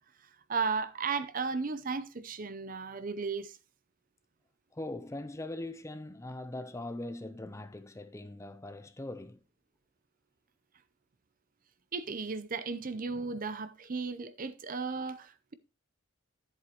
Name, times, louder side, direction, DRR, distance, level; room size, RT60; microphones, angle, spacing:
voice 1, 0.5-3.6 11.9-15.5, right 4 dB, 40° right, 0.6 m, -35 dB
voice 2, 4.7-9.4, left 1 dB, 15° left, 0.5 m, -41 dB
11.0 x 7.6 x 2.9 m
head